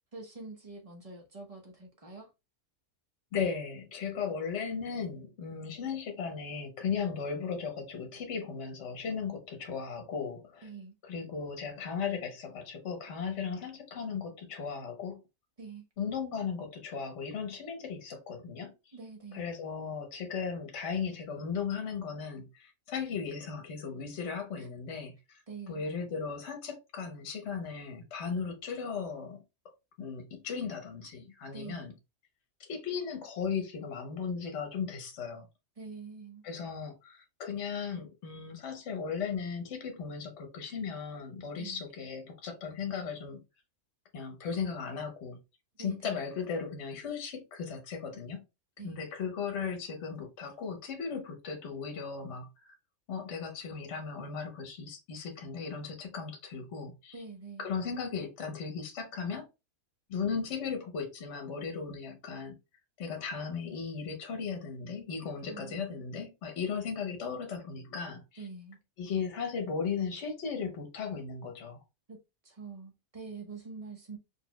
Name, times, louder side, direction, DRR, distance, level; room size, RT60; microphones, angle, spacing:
voice 1, 0.1-2.3 10.6-10.9 15.6-15.8 18.9-19.5 24.6-24.7 25.5-25.8 31.5-31.8 35.8-36.4 41.6-41.8 45.8-46.2 48.8-49.0 57.1-57.7 65.5-66.0 68.4-68.8 72.1-72.2 72.4-74.2, right 4 dB, 30° right, 0.9 m, -45 dB
voice 2, 3.3-10.7 11.0-15.2 16.0-18.9 19.3-29.4 30.0-31.9 32.6-35.5 36.4-43.4 44.1-45.4 45.8-48.4 48.8-52.7 53.1-57.2 57.6-59.5 60.1-62.6 63.0-68.5 69.0-71.8, left 6 dB, 55° left, 1.2 m, -36 dB
4.6 x 3.3 x 2.2 m
omnidirectional pair, 1.5 m